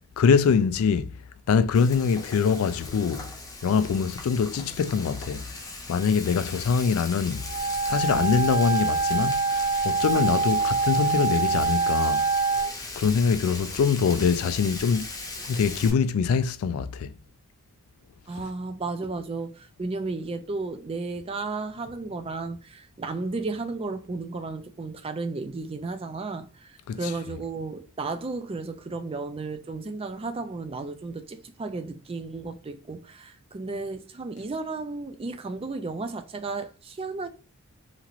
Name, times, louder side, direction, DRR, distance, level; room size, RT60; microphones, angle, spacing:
voice 1, 0.2-1.2 1.5-3.3 3.6-5.4 5.9-7.5 7.9-12.2 13.0-15.1 15.5-17.1 26.9-27.0, left 6 dB, 75° left, 0.3 m, -24 dB
Frying (food), 1.7-15.9, left 2 dB, 15° left, 0.6 m, -38 dB
Wind instrument woodwind instrument, 7.4-12.7, right 4 dB, 40° right, 1.5 m, -25 dB
voice 2, 18.3-37.3, right 3 dB, 25° right, 0.3 m, -33 dB
2.9 x 2.5 x 2.9 m
head